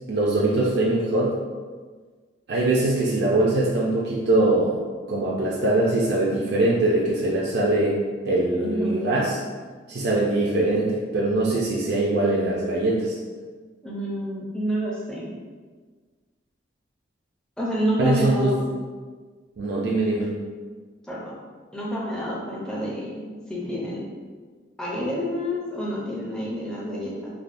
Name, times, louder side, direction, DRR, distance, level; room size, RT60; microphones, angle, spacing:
voice 1, 0.1-1.3 2.5-4.8 5.1-8.0 8.2-9.4 9.9-13.2 18.0-18.6 19.6-20.3, right 2 dB, 55° right, -5 dB, 0.4 m, -22 dB
voice 2, 8.5-9.0 13.8-15.3 17.6-18.6 21.1-21.4 21.7-24.1 24.8-27.3, equal, 5° left, -6 dB, 0.4 m, -28 dB
3.3 x 2.1 x 2.5 m, 1.5 s
head